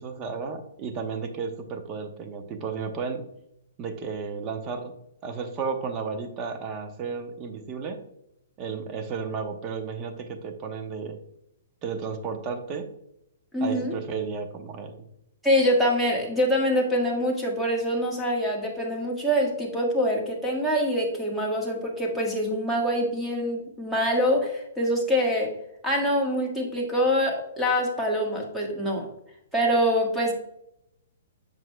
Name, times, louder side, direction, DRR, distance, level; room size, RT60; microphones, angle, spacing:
voice 1, 0.0-3.3 3.8-4.9 5.2-8.0 8.6-11.2 11.8-12.9 13.6-15.1, right 5 dB, 30° right, 6 dB, 1.0 m, -33 dB
voice 2, 13.5-13.9 15.4-25.5 25.8-29.1 29.5-30.3, equal, ahead, -2 dB, 1.6 m, -25 dB
7.6 x 6.0 x 2.2 m, 0.79 s
hypercardioid pair, 130°, 0 cm